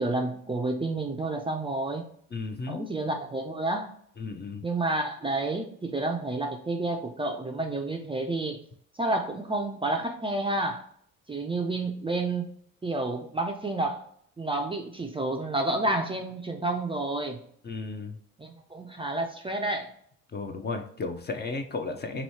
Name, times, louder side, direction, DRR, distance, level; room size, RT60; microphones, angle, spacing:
voice 1, 0.0-2.0 2.7-3.9 4.6-8.6 9.0-10.8 11.3-12.5 12.8-14.0 14.4-17.4 18.4-19.9, right 2 dB, 15° right, 3 dB, 0.5 m, -30 dB
voice 2, 2.3-2.9 4.2-4.6 17.6-18.2 20.3-22.2, left 3 dB, 30° left, 5 dB, 0.6 m, -34 dB
3.0 x 2.7 x 4.2 m, 0.62 s
hypercardioid pair, 65°, 36 cm